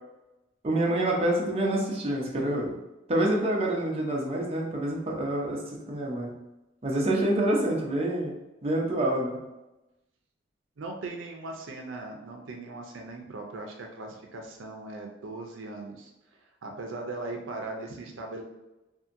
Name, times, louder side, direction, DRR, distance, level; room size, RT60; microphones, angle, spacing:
voice 1, 0.6-2.7 3.1-5.6 5.9-6.3 6.8-8.3 8.6-9.4, right 1 dB, 30° right, -2 dB, 0.5 m, -27 dB
voice 2, 10.8-16.1 16.6-18.4, right 2 dB, 85° right, 2 dB, 0.5 m, -39 dB
2.7 x 2.6 x 2.5 m, 0.99 s
head